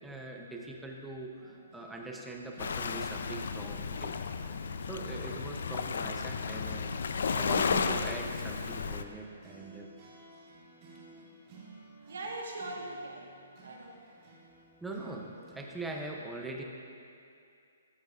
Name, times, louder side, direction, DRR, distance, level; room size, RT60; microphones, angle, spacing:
voice 1, 0.0-4.2 4.9-9.9 14.8-16.6, right 2 dB, 5° right, 0 dB, 0.5 m, -42 dB
sound 1, 1.4-16.0, right 3 dB, 30° right, 1.6 m, -55 dB
Waves surf, 2.6-9.0, left 5 dB, 65° left, 0.3 m, -33 dB
voice 2, 12.0-13.3 13.6-14.0, right 2 dB, 75° right, 0 dB, 1.3 m, -41 dB
13.5 x 6.3 x 2.4 m, 2.5 s
hypercardioid pair, 170°, 0 cm